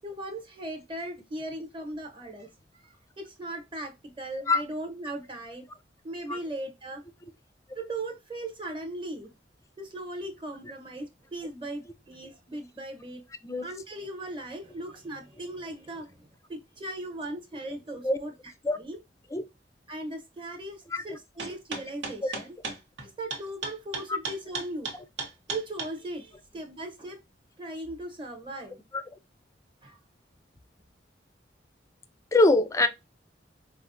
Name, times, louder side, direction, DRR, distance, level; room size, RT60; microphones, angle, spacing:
voice 1, 0.0-5.7 6.0-7.0 7.7-9.3 9.8-13.2 13.6-18.3 18.8-19.0 19.9-22.6 23.0-24.9 25.5-27.2 27.6-28.8 29.8-30.0, right 1 dB, 30° right, 0.9 m, -38 dB
sound 1, 21.4-25.9, right 4 dB, 85° right, 1.0 m, -34 dB
voice 2, 32.3-32.9, left 2 dB, 15° left, 0.4 m, -23 dB
4.5 x 2.1 x 2.5 m
head